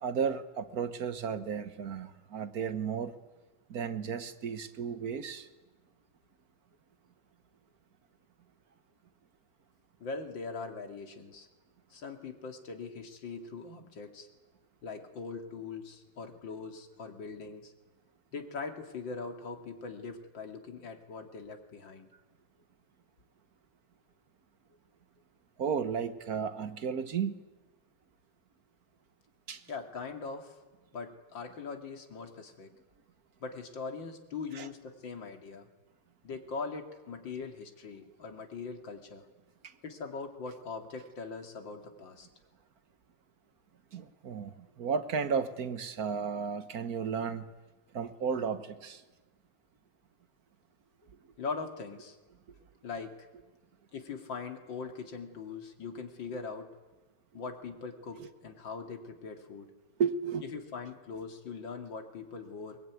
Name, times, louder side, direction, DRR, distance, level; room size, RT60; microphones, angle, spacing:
voice 1, 0.0-3.2 3.7-5.5 25.6-27.3 29.5-29.6 34.5-34.7 39.6-39.7 43.9-47.5 47.9-49.0 60.0-60.4, right 6 dB, 50° right, 1.4 m, -33 dB
voice 2, 10.0-11.5 11.9-14.3 14.8-17.7 18.3-22.1 29.7-30.6 30.9-32.7 33.4-35.7 36.2-39.3 39.8-42.3 51.4-52.2 52.8-53.2 53.9-56.7 57.3-59.7 60.5-62.8, left 4 dB, 60° left, 3.1 m, -41 dB
23.0 x 21.0 x 9.6 m
omnidirectional pair, 2.4 m